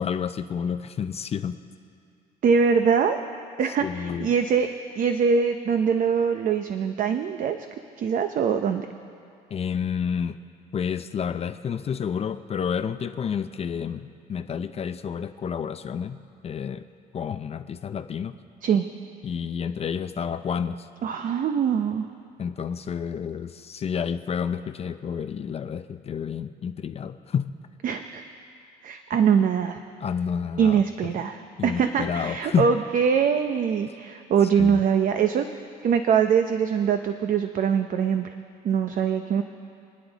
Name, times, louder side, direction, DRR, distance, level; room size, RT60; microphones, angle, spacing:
voice 1, 0.0-1.6 3.8-4.3 9.5-10.4 10.7-16.2 16.4-16.8 17.1-18.3 19.2-20.9 22.4-27.5 30.0-31.1 31.6-32.7 34.6-34.8, left 7 dB, 35° left, 9 dB, 0.5 m, -29 dB
voice 2, 2.4-3.2 3.6-4.7 5.0-7.6 8.0-8.9 18.6-18.8 21.0-22.1 27.8-28.2 28.8-29.8 30.6-35.5 35.8-38.3 38.6-39.4, right 6 dB, 55° right, 7 dB, 0.7 m, -23 dB
28.5 x 9.9 x 4.1 m, 2.4 s
cardioid pair, 110°, 17 cm